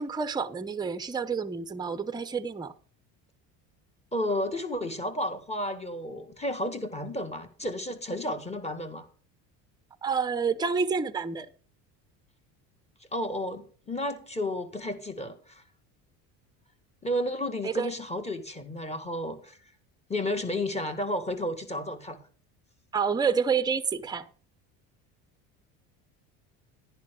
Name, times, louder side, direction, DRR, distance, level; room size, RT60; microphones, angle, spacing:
voice 1, 0.0-2.7 10.0-11.5 17.6-17.9 22.9-24.3, right 5 dB, 10° right, 0.8 m, -28 dB
voice 2, 4.1-9.1 13.1-15.6 17.0-19.6 20.1-22.2, left 1 dB, 15° left, 2.0 m, -32 dB
10.5 x 10.5 x 3.8 m
cardioid pair, 115°, 37 cm